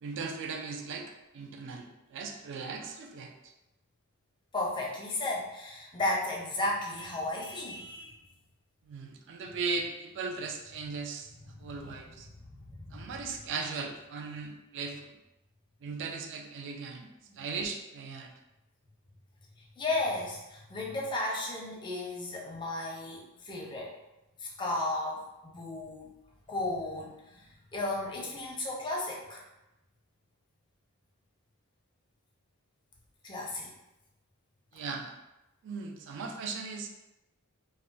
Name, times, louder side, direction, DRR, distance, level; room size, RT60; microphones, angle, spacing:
voice 1, 0.0-3.5 8.9-11.3 11.6-12.3 12.9-15.1 15.8-17.1 17.4-18.3 34.7-35.1 35.6-36.9, right 4 dB, 55° right, 3 dB, 0.3 m, -38 dB
voice 2, 4.5-8.1 11.6-12.1 12.7-13.2 17.3-17.4 19.8-24.0 24.4-26.1 26.5-29.4 33.2-33.7, left 2 dB, 20° left, -1 dB, 0.5 m, -34 dB
2.4 x 2.1 x 3.8 m, 0.93 s
head